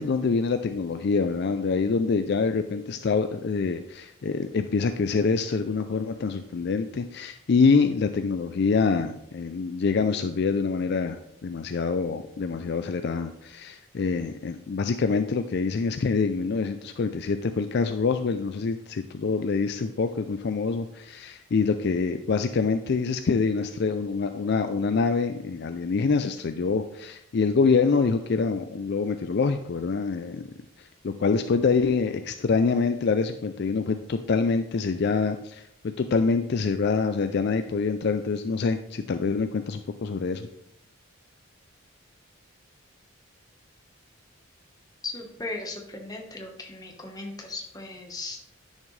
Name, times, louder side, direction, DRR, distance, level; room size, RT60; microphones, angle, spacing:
voice 1, 0.0-30.5 30.8-40.5, left 4 dB, 50° left, 9 dB, 0.4 m, -25 dB
voice 2, 45.0-48.5, left 2 dB, 20° left, 2 dB, 1.2 m, -37 dB
10.5 x 6.4 x 3.2 m, 0.75 s
head